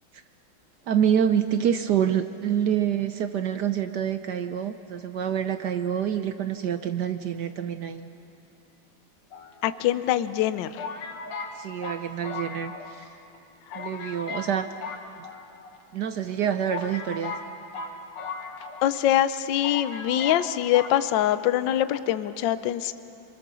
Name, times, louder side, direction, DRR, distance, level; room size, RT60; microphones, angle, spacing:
voice 1, 0.9-8.1 11.5-13.1 13.7-14.7 15.9-17.3, right 9 dB, 65° right, 9 dB, 1.1 m, -27 dB
sound 1, 9.3-10.1 10.8-13.1 13.3-13.4 13.7-14.5 14.8-15.8 16.3-16.4 16.7-19.0 19.3-19.4 19.6-20.5 20.7-21.0, left 4 dB, 85° left, 2.5 m, -37 dB
voice 2, 9.6-10.7 18.8-22.9, left 12 dB, 70° left, 12 dB, 1.3 m, -24 dB
27.5 x 23.5 x 6.9 m, 2.9 s
omnidirectional pair, 2.4 m